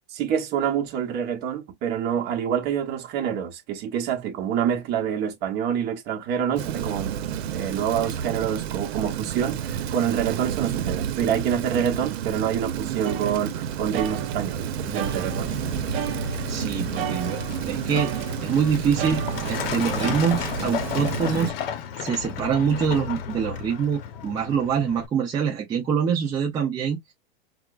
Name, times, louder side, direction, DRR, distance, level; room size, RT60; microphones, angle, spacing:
voice 1, 0.1-7.2 7.5-15.5, right 8 dB, 35° right, 0.9 m, -27 dB
Rain, 6.6-21.5, right 9 dB, 85° right, 0.6 m, -30 dB
sound 1, 13.0-14.6 14.9-16.6 16.9-18.6 19.0-21.1, right 10 dB, 65° right, 0.9 m, -35 dB
Truck, 14.8-25.1, left 8 dB, 70° left, 0.8 m, -33 dB
voice 2, 16.5-21.5 22.0-27.0, right 7 dB, 15° right, 0.4 m, -25 dB
4.6 x 2.0 x 2.3 m
supercardioid pair, 150°, 31 cm